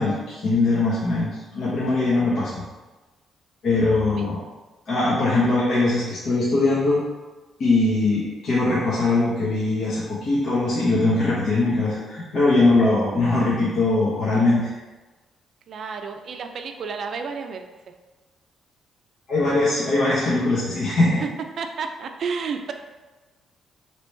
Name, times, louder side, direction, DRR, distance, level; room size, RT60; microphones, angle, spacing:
voice 1, 0.0-2.6 3.6-4.4 4.9-7.0 7.6-14.7 19.3-21.2, left 2 dB, 65° left, -10 dB, 1.0 m, -21 dB
voice 2, 15.7-17.6 21.2-21.3 21.6-22.7, right 5 dB, 60° right, 6 dB, 0.4 m, -31 dB
3.0 x 2.9 x 3.2 m, 1.2 s
cardioid pair, 90°, 0 cm